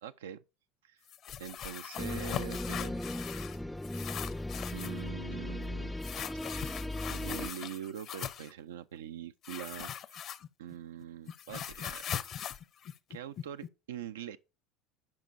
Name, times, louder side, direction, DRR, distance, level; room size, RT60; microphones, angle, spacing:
voice 1, 0.0-0.4 0.8-1.0 1.4-3.0 4.7-6.8 7.1-10.3 10.6-12.5 13.1-14.4, right 9 dB, 85° right, 0.3 m, -44 dB
sound 1, 1.1-3.6 3.8-5.0 6.0-8.5 9.4-10.7 11.0-13.7, left 9 dB, 50° left, 0.6 m, -40 dB
sound 2, 2.0-7.5, left 1 dB, 5° left, 0.4 m, -37 dB
10.5 x 5.1 x 2.6 m
hypercardioid pair, 80°, 0 cm